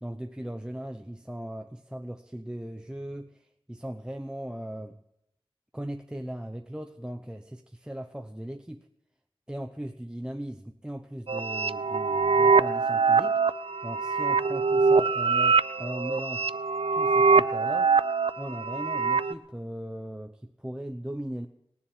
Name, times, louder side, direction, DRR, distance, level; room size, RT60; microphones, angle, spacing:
voice 1, 0.0-5.0 5.7-8.9 9.5-13.4 13.8-16.5 16.9-17.9 18.4-21.5, right 1 dB, 10° right, 5 dB, 0.8 m, -38 dB
sound 1, 11.3-19.3, right 4 dB, 75° right, 0.5 m, -23 dB
19.5 x 7.2 x 9.3 m, 0.79 s
wide cardioid pair, 50°, 10 cm